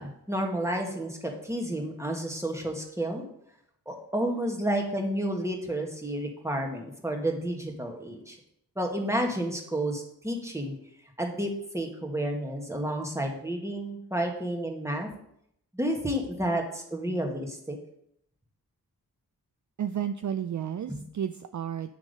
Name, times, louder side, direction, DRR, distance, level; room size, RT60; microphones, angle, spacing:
voice 1, 0.0-3.2 3.8-8.4 8.7-10.8 11.2-15.1 15.7-17.8 20.9-21.0, right 1 dB, 5° right, 1 dB, 1.7 m, -31 dB
voice 2, 19.8-21.9, right 9 dB, 50° right, 10 dB, 0.4 m, -32 dB
8.1 x 3.6 x 5.2 m, 0.74 s
cardioid pair, 40°, 39 cm